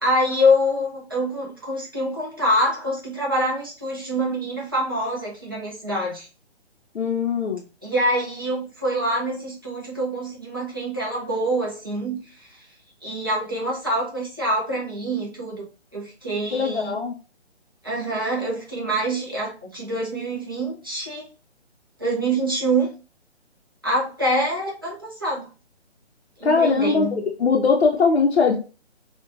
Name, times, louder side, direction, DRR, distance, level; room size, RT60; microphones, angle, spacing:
voice 1, 0.0-6.3 7.8-12.5 13.0-15.6 15.9-17.0 17.8-21.2 22.0-22.9 23.8-25.5 26.4-27.2, equal, 20° right, -4 dB, 0.4 m, -25 dB
voice 2, 6.9-7.6 16.5-17.2 26.4-28.6, left 5 dB, 70° left, 1 dB, 0.5 m, -20 dB
2.9 x 2.1 x 2.5 m, 0.34 s
figure-of-eight pair, 140°, 35 cm